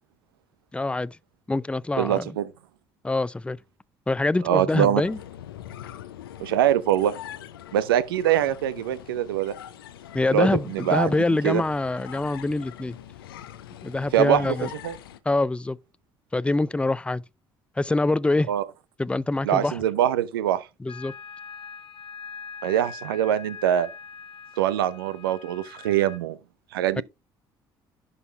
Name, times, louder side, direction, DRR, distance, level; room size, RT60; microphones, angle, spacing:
voice 1, 0.7-1.2 1.5-2.3 3.0-3.6 4.1-5.2 10.1-13.0 13.8-14.7 15.3-15.8 16.3-17.2 17.8-18.5 19.0-19.8 20.8-21.1 27.0-27.1, left 2 dB, 10° left, 0.4 m, -25 dB
voice 2, 2.0-2.5 4.4-5.0 6.4-7.1 7.7-9.5 10.3-11.2 11.4-11.6 14.1-14.5 14.8-15.0 18.5-18.6 19.4-20.7 22.6-23.9 24.6-26.4 26.7-27.0, right 11 dB, 85° right, 0.6 m, -23 dB
sound 1, 5.0-15.2, left 11 dB, 85° left, 0.6 m, -43 dB
sound 2, 20.9-26.2, left 6 dB, 45° left, 1.5 m, -42 dB
11.0 x 4.1 x 3.8 m
hypercardioid pair, 55°, 12 cm